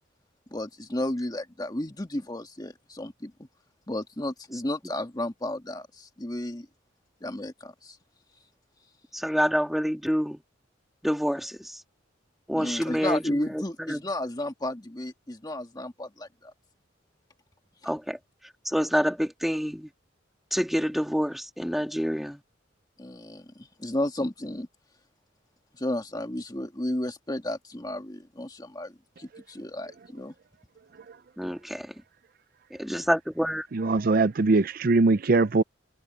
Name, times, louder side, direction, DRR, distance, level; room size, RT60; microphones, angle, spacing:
voice 1, 0.5-3.3 3.9-6.7 7.2-8.0 12.6-16.5 23.0-24.7 25.8-30.3, left 1 dB, 20° left, 1.8 m, -33 dB
voice 2, 9.1-10.4 11.0-11.8 12.5-14.0 17.8-18.2 18.6-19.9 20.5-22.4 31.4-31.9 32.7-33.7, equal, ahead, 2.3 m, -27 dB
voice 3, 33.7-35.6, right 3 dB, 50° right, 0.5 m, -22 dB
head